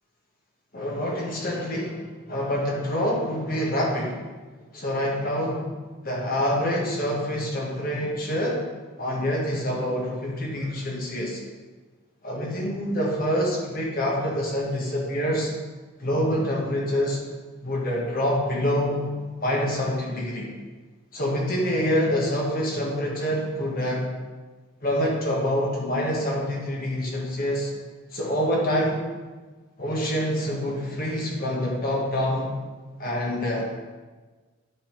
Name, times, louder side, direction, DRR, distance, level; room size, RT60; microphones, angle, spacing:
voice 1, 0.7-4.2 4.7-5.6 6.0-8.6 9.0-11.4 12.2-15.5 16.0-17.2 17.6-19.1 19.4-20.5 21.1-24.1 24.8-27.7 28.1-29.0 29.8-32.6 33.0-33.7, equal, 45° left, -2 dB, 1.3 m, -26 dB
9.8 x 4.0 x 4.4 m, 1.3 s
head